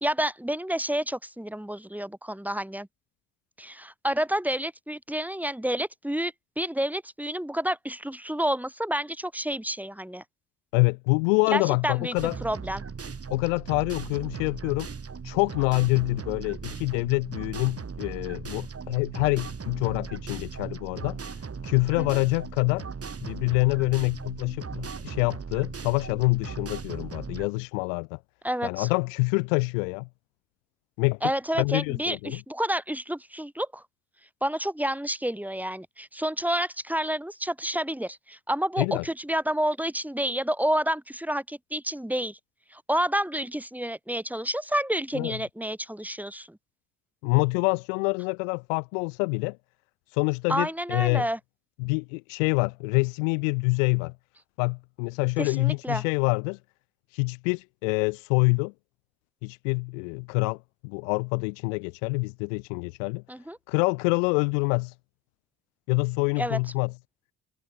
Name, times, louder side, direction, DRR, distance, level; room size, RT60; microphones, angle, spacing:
voice 1, 0.0-2.9 3.6-10.2 11.5-12.8 22.0-22.1 28.4-28.9 31.2-33.8 34.4-42.4 42.7-46.6 50.5-51.4 55.4-56.0 63.3-63.6 66.4-66.6, right 1 dB, 5° right, 3.5 m, -29 dB
voice 2, 10.7-12.4 13.3-14.9 15.2-21.2 21.6-22.9 23.2-28.2 28.6-30.1 31.0-31.2 31.6-32.4 38.8-39.0 45.1-45.4 47.2-49.6 50.1-51.3 51.8-54.1 54.6-56.6 57.1-58.7 59.4-63.2 63.7-64.9 65.9-66.9, left 33 dB, 75° left, 0.6 m, -26 dB
sound 1, 12.2-27.5, right 5 dB, 35° right, 7.5 m, -38 dB
hypercardioid pair, 45°, 39 cm